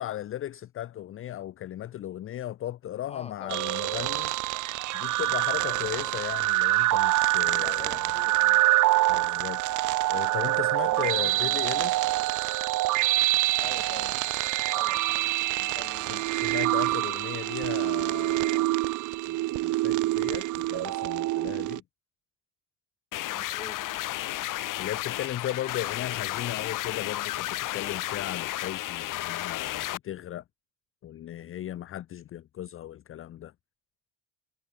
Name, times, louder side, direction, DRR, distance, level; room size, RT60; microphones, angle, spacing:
voice 1, 0.0-4.3 4.9-8.2 9.1-9.6 10.1-12.1 16.0-18.7 19.3-21.8 24.8-30.4 31.0-33.5, left 12 dB, 35° left, 0.6 m, -36 dB
voice 2, 3.1-3.7 5.6-6.2 7.6-8.6 10.9-12.0 13.6-14.4 14.7-16.3 23.3-24.1, left 5 dB, 15° left, 1.0 m, -46 dB
sound 1, 3.5-21.8, right 18 dB, 55° right, 0.6 m, -26 dB
sound 2, 23.1-30.0, left 16 dB, 60° left, 1.1 m, -33 dB
cardioid pair, 130°, 36 cm